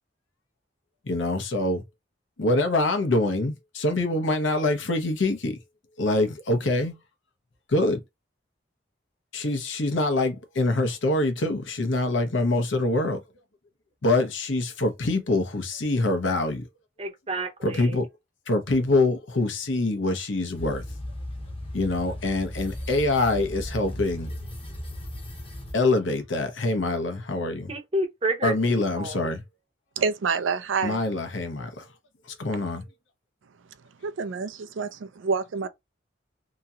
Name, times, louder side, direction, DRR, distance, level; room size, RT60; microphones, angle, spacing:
voice 1, 1.1-1.8 2.4-5.6 6.0-7.0 7.7-8.0 9.3-13.2 14.0-16.6 17.6-18.1 18.5-20.8 21.7-24.3 25.7-27.7 28.4-29.4 30.8-31.9 32.4-32.8, left 2 dB, 80° left, 0.8 m, -25 dB
voice 2, 17.0-18.0 27.7-28.5 29.0-29.3, right 1 dB, 30° right, 0.7 m, -29 dB
sound 1, 20.5-25.7, left 1 dB, 30° left, 0.8 m, -36 dB
voice 3, 30.0-31.0 34.0-35.7, right 5 dB, 85° right, 0.4 m, -27 dB
2.9 x 2.8 x 2.4 m
head